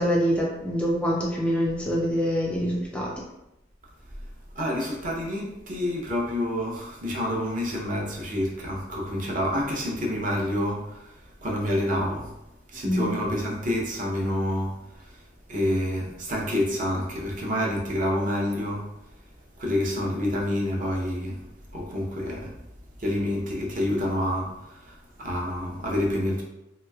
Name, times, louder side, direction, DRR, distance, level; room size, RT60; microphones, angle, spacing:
voice 1, 0.0-3.1 12.8-13.1, equal, 5° left, -3 dB, 0.3 m, -25 dB
voice 2, 4.5-11.1 11.4-12.3 12.7-15.2 15.5-18.8 19.6-21.4 21.7-22.5 23.0-26.4, left 1 dB, 45° right, -2 dB, 0.7 m, -28 dB
3.1 x 2.9 x 2.3 m, 0.91 s
head